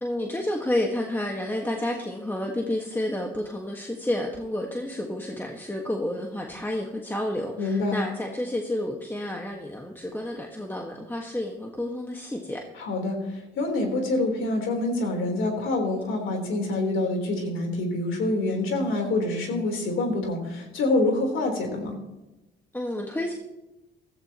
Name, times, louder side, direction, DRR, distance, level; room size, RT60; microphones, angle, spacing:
voice 1, 0.0-12.6 22.7-23.3, left 1 dB, 10° left, 1 dB, 1.6 m, -30 dB
voice 2, 7.6-8.0 12.8-22.0, left 2 dB, 80° left, 2 dB, 3.9 m, -26 dB
16.0 x 14.5 x 3.0 m, 0.99 s
cardioid pair, 90°, 20 cm